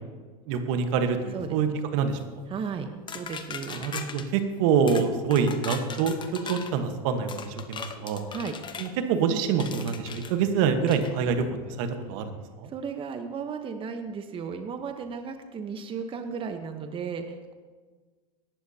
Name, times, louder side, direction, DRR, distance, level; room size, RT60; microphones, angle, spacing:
voice 1, 0.5-1.7 1.9-2.2 3.7-8.2 8.8-11.4 11.8-12.7, right 6 dB, 65° right, 7 dB, 1.3 m, -26 dB
voice 2, 1.3-1.8 2.5-3.9 8.3-8.6 12.7-17.5, right 6 dB, 30° right, 7 dB, 1.0 m, -35 dB
sound 1, 3.1-4.3 4.9-5.1 5.3-6.7 7.3-8.9 9.6-10.3 10.9-11.1, left 6 dB, 25° left, 0.9 m, -38 dB
17.0 x 12.0 x 2.8 m, 1.4 s
supercardioid pair, 110°, 19 cm